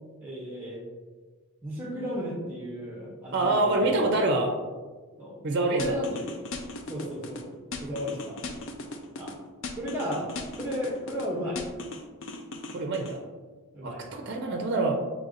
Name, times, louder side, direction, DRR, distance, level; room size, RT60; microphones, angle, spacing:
voice 1, 0.2-0.8 1.6-4.0 5.2-5.4 5.7-6.4 6.9-7.5 7.8-8.4 9.2-9.4 9.7-11.6 13.7-14.0, equal, 10° right, -4 dB, 0.7 m, -34 dB
voice 2, 3.3-4.5 5.4-6.0 12.7-13.2 13.8-15.0, right 2 dB, 50° right, 2 dB, 0.5 m, -26 dB
sound 1, 5.8-7.4 7.7-9.3 9.6-11.3 11.6-13.1, left 3 dB, 55° left, 0.4 m, -37 dB
5.2 x 3.2 x 2.6 m, 1.4 s
head